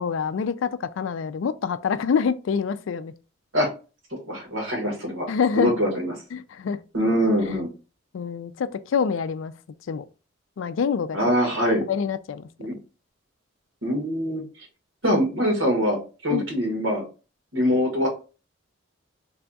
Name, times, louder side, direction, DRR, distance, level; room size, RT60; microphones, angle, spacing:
voice 1, 0.0-3.1 5.3-5.7 6.3-6.8 7.5-7.6 8.1-9.5 9.9-10.0 10.6-11.2 11.9-12.5 16.3-16.4, left 6 dB, 75° left, 0.3 m, -26 dB
voice 2, 4.3-5.3 5.6-6.1 6.9-7.7 11.1-11.9 12.6-12.7 13.8-14.4 15.0-17.0 17.5-18.1, equal, 75° right, 1.6 m, -23 dB
3.4 x 2.3 x 3.9 m
head